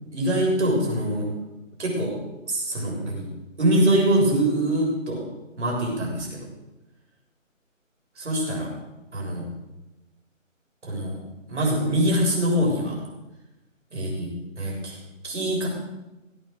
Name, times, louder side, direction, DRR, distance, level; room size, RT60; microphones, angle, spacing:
voice 1, 0.1-1.3 1.8-2.1 2.5-3.3 3.6-5.2 5.6-6.4 8.2-8.7 9.1-9.5 10.8-11.2 11.5-13.0 13.9-14.3 14.6-15.0 15.2-15.7, right 1 dB, 60° right, -2 dB, 7.1 m, -23 dB
18.0 x 8.8 x 6.7 m, 1.0 s
figure-of-eight pair, 155°, 39 cm